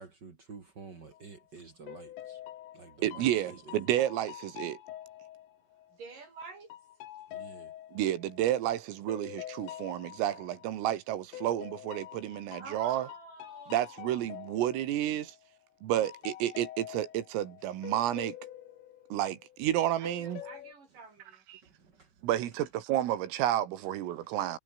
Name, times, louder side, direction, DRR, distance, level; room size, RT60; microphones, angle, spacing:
voice 1, 0.0-2.4 2.7-3.9 7.3-7.7 20.9-21.0 21.6-22.2 24.2-24.3, right 4 dB, 60° right, 1.1 m, -51 dB
sound 1, 1.1-1.4 1.9-6.2 6.7-10.9 11.3-15.6 15.9-19.7 20.0-20.7, left 12 dB, 75° left, 4.4 m, -47 dB
voice 2, 3.0-4.8 7.9-13.1 13.7-15.4 15.8-18.3 19.1-20.4 21.5-21.6 22.2-24.6, right 12 dB, 85° right, 4.7 m, -31 dB
voice 3, 6.0-6.7 12.6-14.1 20.0-21.4, right 4 dB, 40° right, 8.9 m, -48 dB
omnidirectional pair, 5.8 m